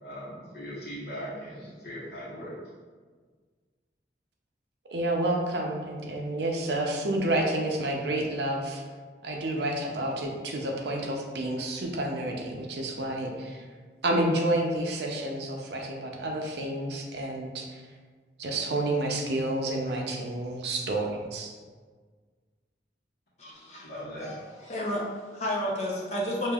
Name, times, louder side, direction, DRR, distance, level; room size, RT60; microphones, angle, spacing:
voice 1, 0.0-2.6 23.8-24.6, equal, 65° left, -7 dB, 1.3 m, -39 dB
voice 2, 4.9-8.8 9.2-13.7 14.0-17.8 18.4-21.5, right 1 dB, 75° right, 1 dB, 0.6 m, -29 dB
voice 3, 23.4-23.9 24.2-24.4 24.6-26.5, equal, 40° left, -4 dB, 0.7 m, -31 dB
5.1 x 2.7 x 2.4 m, 1.5 s
head